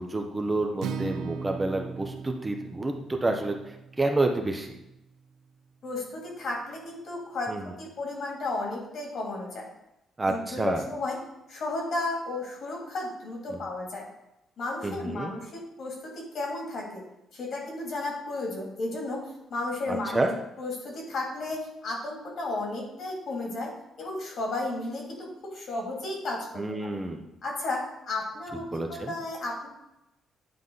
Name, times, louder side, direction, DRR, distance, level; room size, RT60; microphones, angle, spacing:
voice 1, 0.0-4.8 7.5-7.7 10.2-10.8 13.5-13.6 14.8-15.3 19.9-20.3 26.6-27.2 28.7-29.1, right 2 dB, 20° right, 4 dB, 0.7 m, -29 dB
Acoustic guitar, 0.8-5.0, right 6 dB, 75° right, 0.4 m, -38 dB
voice 2, 5.8-7.5 7.8-9.7 10.3-11.2 11.5-14.0 14.6-17.0 17.3-19.2 19.5-20.2 20.6-23.7 24.0-26.9 27.4-27.8 28.1-29.7, left 2 dB, 60° left, -1 dB, 2.5 m, -33 dB
9.4 x 3.6 x 4.0 m, 0.87 s
cardioid pair, 115°, 0 cm